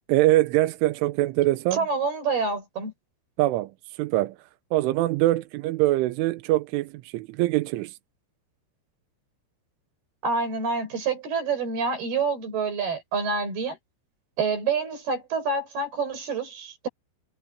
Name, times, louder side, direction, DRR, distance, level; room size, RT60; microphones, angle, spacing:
voice 1, 0.1-1.9 3.4-3.7 4.0-4.4 4.7-8.0, right 16 dB, 90° right, 3.3 m, -23 dB
voice 2, 1.7-2.9 10.2-13.8 14.4-16.9, right 4 dB, 55° right, 8.1 m, -27 dB
omnidirectional pair, 5.6 m